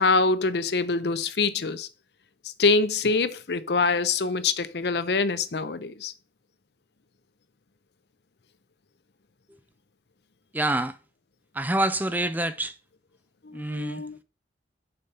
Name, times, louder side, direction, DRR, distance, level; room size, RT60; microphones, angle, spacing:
voice 1, 0.0-1.9 2.6-6.1 13.4-14.2, left 4 dB, 70° left, 0.7 m, -25 dB
voice 2, 10.5-10.9 11.5-12.7 13.5-14.2, right 1 dB, 10° right, 0.4 m, -27 dB
6.8 x 5.2 x 5.4 m
head